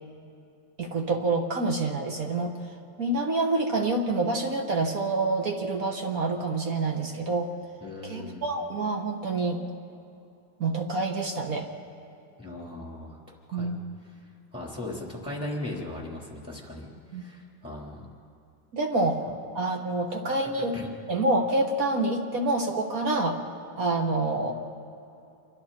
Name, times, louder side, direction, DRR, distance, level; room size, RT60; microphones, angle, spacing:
voice 1, 0.8-2.7 3.0-7.5 8.0-9.6 10.6-11.7 13.5-13.8 17.1-17.2 18.7-19.3 19.5-20.7 21.1-23.4 23.8-24.5, right 2 dB, 50° right, 2 dB, 1.6 m, -27 dB
voice 2, 7.8-8.4 12.4-13.2 13.5-13.7 14.5-16.9 17.1-18.1 20.2-20.3 20.7-20.9, left 1 dB, 5° right, -3 dB, 3.9 m, -38 dB
27.5 x 22.5 x 4.4 m, 2.7 s
omnidirectional pair, 2.2 m